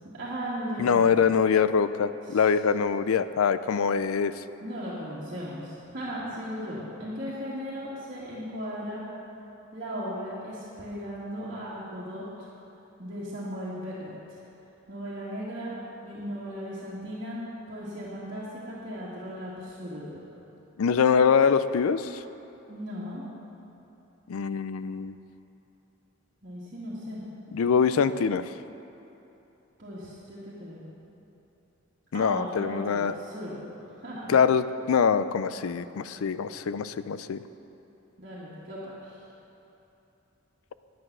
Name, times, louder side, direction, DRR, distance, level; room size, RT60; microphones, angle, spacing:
voice 1, 0.1-1.2 2.3-2.4 4.6-9.0 9.7-12.2 13.0-14.4 14.9-15.7 16.0-17.4 17.7-20.2 22.7-23.2 26.4-27.2 29.8-30.9 32.1-34.4 38.2-39.1, equal, 50° right, -10 dB, 2.0 m, -37 dB
voice 2, 0.8-4.4 20.8-22.2 24.3-25.1 27.5-28.5 32.1-33.1 34.3-37.4, left 6 dB, 85° left, 13 dB, 0.4 m, -24 dB
10.5 x 9.7 x 6.1 m, 3.0 s
head